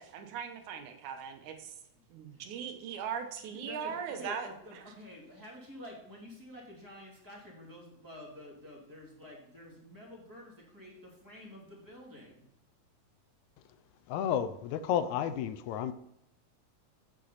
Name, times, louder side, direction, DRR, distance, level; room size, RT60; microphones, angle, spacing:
voice 1, 0.0-1.7 2.1-4.8, right 7 dB, 85° right, 2.5 m, -39 dB
voice 2, 3.5-12.5, left 1 dB, 5° right, 2.3 m, -49 dB
voice 3, 14.1-15.9, left 9 dB, 80° left, 1.9 m, -31 dB
8.6 x 6.5 x 4.0 m
omnidirectional pair, 3.4 m